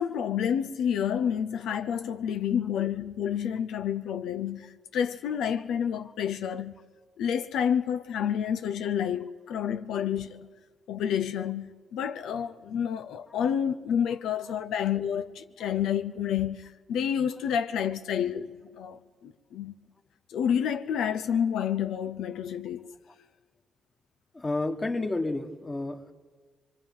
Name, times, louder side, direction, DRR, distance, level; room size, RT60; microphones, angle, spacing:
voice 1, 0.0-6.8 7.2-10.5 10.9-19.7 20.3-22.9, left 8 dB, 85° left, 0.6 m, -29 dB
voice 2, 24.3-26.1, left 2 dB, 25° left, 1.5 m, -31 dB
24.5 x 23.5 x 5.6 m
cardioid pair, 90°, 0 cm